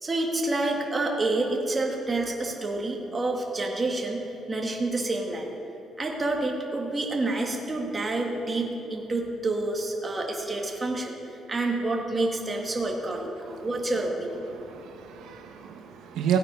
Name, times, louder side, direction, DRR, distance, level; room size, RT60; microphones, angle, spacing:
voice 1, 0.0-5.5 6.0-11.1 11.5-14.5, right 2 dB, 20° right, 0 dB, 1.6 m, -28 dB
voice 2, 14.5-16.4, right 9 dB, 85° right, 3 dB, 1.2 m, -30 dB
17.0 x 9.1 x 5.3 m, 2.7 s
cardioid pair, 145°, 0 cm